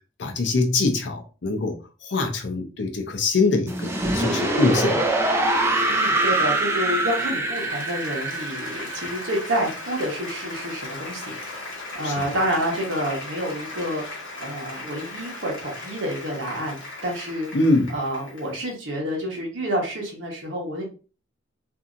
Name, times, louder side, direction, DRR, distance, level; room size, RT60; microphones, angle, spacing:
voice 1, 0.2-5.1 12.0-12.3 17.5-17.9, left 3 dB, 65° left, 4 dB, 0.6 m, -24 dB
sound 1, 3.7-10.6, right 2 dB, 15° right, 0.3 m, -24 dB
voice 2, 5.9-11.7 11.9-14.0 14.4-17.5 17.9-20.8, equal, 85° right, -1 dB, 1.0 m, -28 dB
Applause, 7.1-18.6, left 2 dB, 80° left, 1.3 m, -38 dB
2.7 x 2.5 x 2.5 m, 0.35 s
head